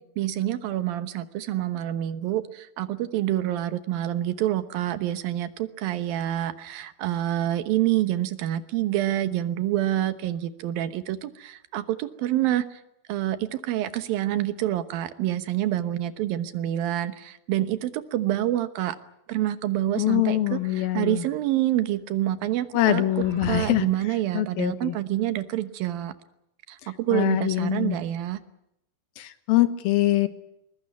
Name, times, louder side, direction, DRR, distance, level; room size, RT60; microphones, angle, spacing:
voice 1, 0.2-12.8 13.1-19.0 19.3-26.1 26.7-28.4, right 13 dB, 80° right, 12 dB, 2.9 m, -27 dB
voice 2, 20.0-21.2 22.7-23.9 24.3-24.9 27.1-28.0 29.2-30.3, left 14 dB, 90° left, 12 dB, 3.1 m, -23 dB
sound 1, 20.5-21.4 22.8-24.0, right 1 dB, 20° right, 7.0 m, -38 dB
21.5 x 21.0 x 9.5 m, 0.80 s
omnidirectional pair, 4.2 m